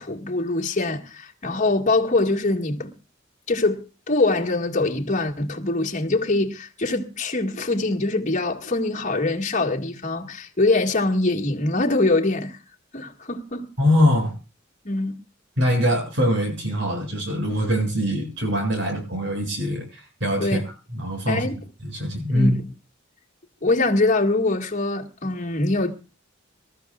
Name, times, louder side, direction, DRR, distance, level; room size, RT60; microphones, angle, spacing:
voice 1, 0.0-2.9 3.5-12.6 12.9-13.7 14.9-15.2 20.4-20.6 21.3-21.5 22.3-22.7 23.6-25.9, left 2 dB, 40° left, 1.9 m, -23 dB
voice 2, 13.8-14.4 15.6-19.9 20.2-20.6 20.9-21.5 21.8-22.6, equal, 65° right, 7.5 m, -22 dB
26.5 x 13.5 x 2.5 m
head